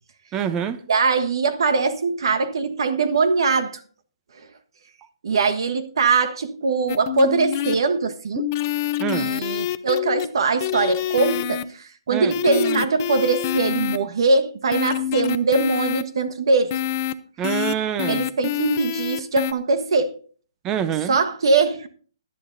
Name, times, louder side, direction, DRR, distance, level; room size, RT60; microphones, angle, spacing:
voice 1, 0.3-0.8 9.0-9.3 12.1-12.3 17.4-18.2 20.6-21.2, right 9 dB, 20° right, 0.7 m, -25 dB
voice 2, 0.9-3.8 5.2-8.5 9.1-16.7 18.1-20.1 21.1-21.9, right 4 dB, 65° right, 1.4 m, -22 dB
sound 1, 6.9-7.8 8.4-10.3 10.6-11.6 12.3-14.0 14.7-16.0 16.7-17.1 17.4-17.7 18.0-19.5, left 12 dB, 35° left, 0.7 m, -26 dB
18.5 x 11.0 x 2.7 m
hypercardioid pair, 155°, 3 cm